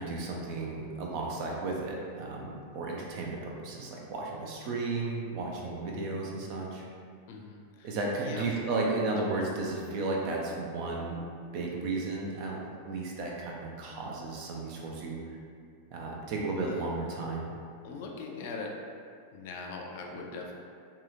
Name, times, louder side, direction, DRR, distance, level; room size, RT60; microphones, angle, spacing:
voice 1, 0.0-6.9 7.8-11.2 11.5-15.2 15.9-17.6, right 3 dB, 45° right, -1 dB, 0.4 m, -34 dB
voice 2, 7.3-7.9 8.2-8.5 16.7-16.9 17.8-18.7 19.3-20.5, left 4 dB, 50° left, 0 dB, 0.3 m, -40 dB
2.7 x 2.3 x 2.5 m, 2.3 s
figure-of-eight pair, 90°, 0 cm